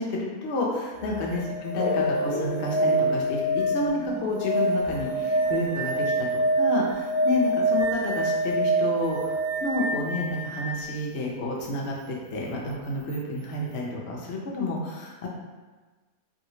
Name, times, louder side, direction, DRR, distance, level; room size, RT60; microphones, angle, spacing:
voice 1, 0.0-6.3 6.6-15.3, left 2 dB, 60° left, -2 dB, 0.8 m, -30 dB
sound 1, 0.9-10.8 13.1-13.2, right 1 dB, 80° right, 0.4 m, -26 dB
sound 2, 1.8-6.3, left 2 dB, 80° left, 1.1 m, -36 dB
2.9 x 2.7 x 2.7 m, 1.3 s
omnidirectional pair, 1.5 m